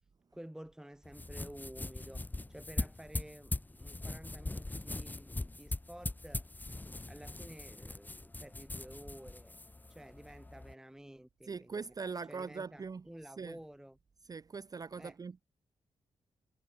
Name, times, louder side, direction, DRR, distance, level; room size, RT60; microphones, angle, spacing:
voice 1, 0.3-6.5 7.1-9.6 9.9-11.9 12.3-14.0 15.0-15.2, right 1 dB, 5° right, 2.0 m, -51 dB
sound 1, 1.0-10.7, left 2 dB, 15° left, 1.7 m, -41 dB
voice 2, 11.4-13.0 13.4-13.6 14.3-15.4, right 5 dB, 35° right, 0.6 m, -41 dB
cardioid pair, 100°, 11 cm